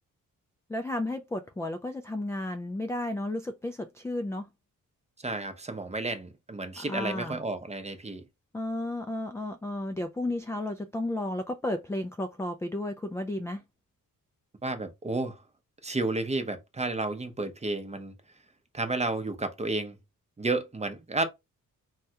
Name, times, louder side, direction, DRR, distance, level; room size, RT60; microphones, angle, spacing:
voice 1, 0.7-4.5 6.9-7.4 8.5-13.6, left 1 dB, 10° left, 0.3 m, -33 dB
voice 2, 5.2-8.2 14.6-15.4 15.8-18.1 18.7-20.0 20.4-21.2, right 2 dB, 20° right, 0.7 m, -31 dB
3.1 x 2.3 x 2.8 m
cardioid pair, 70°, 35 cm